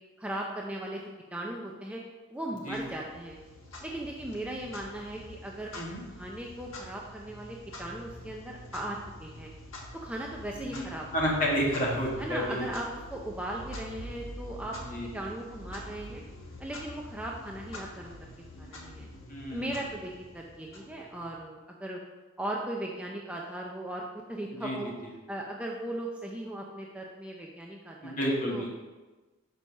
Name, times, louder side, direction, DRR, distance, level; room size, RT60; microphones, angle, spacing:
voice 1, 0.2-1.0 1.3-2.0 2.3-3.4 3.8-5.7 6.2-9.5 10.0-11.4 12.2-16.2 16.6-18.2 18.6-19.1 19.5-22.0 22.4-24.0 24.3-24.9 25.3-28.2 28.5-28.7, right 1 dB, 5° right, -2 dB, 0.5 m, -38 dB
Clock, 2.7-21.4, left 1 dB, 65° left, 1.3 m, -46 dB
voice 2, 10.6-10.9 11.1-12.6 14.9-15.1 19.3-19.7 24.6-24.8 28.0-28.8, equal, 40° left, -3 dB, 1.7 m, -30 dB
6.0 x 5.4 x 5.2 m, 1.2 s
head